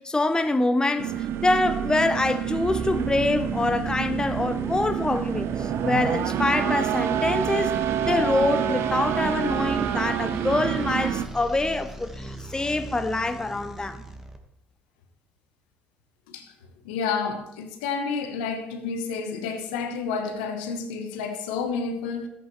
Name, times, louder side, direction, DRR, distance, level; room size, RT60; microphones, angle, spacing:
voice 1, 0.0-14.0, left 2 dB, 15° left, 0.6 m, -25 dB
sound 1, 1.0-11.3, right 10 dB, 60° right, 0.6 m, -27 dB
sound 2, 1.1-14.4, right 1 dB, 5° right, 1.3 m, -38 dB
voice 2, 16.8-22.3, left 5 dB, 75° left, 1.1 m, -30 dB
13.5 x 8.4 x 3.1 m
hypercardioid pair, 60°, 5 cm